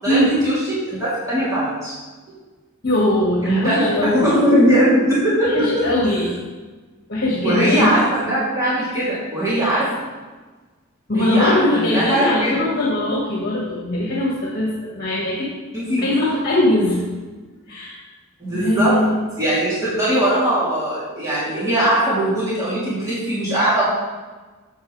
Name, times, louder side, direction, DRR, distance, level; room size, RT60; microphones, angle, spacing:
voice 1, 0.0-1.9 3.4-5.8 7.4-9.9 11.1-12.5 15.7-16.1 18.4-19.0 19.4-23.9, right 1 dB, 15° right, -11 dB, 3.3 m, -20 dB
voice 2, 2.8-4.2 5.4-6.4 7.1-7.9 11.1-15.5 16.0-17.0 17.7-18.0 18.5-19.1, left 1 dB, 45° left, -4 dB, 1.9 m, -20 dB
13.5 x 8.1 x 3.4 m, 1.3 s
head